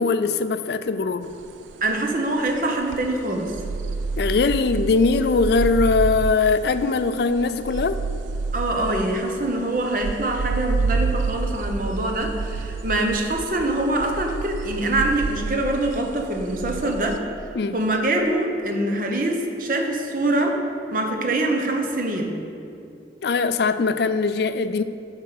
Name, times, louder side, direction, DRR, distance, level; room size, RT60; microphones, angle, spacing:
voice 1, 0.0-1.3 4.2-8.0 17.5-17.8 23.2-24.8, left 4 dB, 60° left, 12 dB, 0.4 m, -21 dB
sound 1, 1.3-17.2, right 4 dB, 90° right, 0.4 m, -29 dB
voice 2, 1.8-3.5 8.5-17.2 17.7-20.6 20.9-22.3, right 2 dB, 45° right, 2 dB, 0.9 m, -24 dB
7.7 x 5.6 x 6.7 m, 2.6 s
head